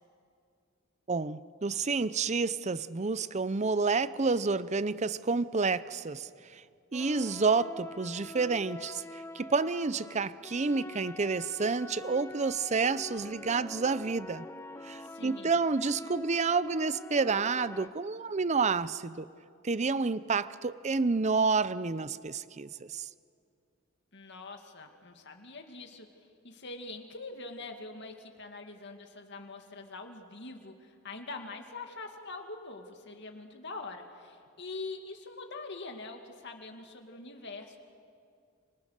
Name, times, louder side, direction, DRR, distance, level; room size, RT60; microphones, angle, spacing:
voice 1, 1.1-6.6 6.9-14.5 14.8-19.3 19.6-23.1, right 4 dB, 30° right, 0.6 m, -29 dB
sound 1, 6.9-17.9, left 2 dB, 10° left, 0.5 m, -45 dB
voice 2, 15.0-15.6 24.1-37.8, left 3 dB, 55° left, 2.3 m, -44 dB
29.5 x 26.0 x 6.6 m
head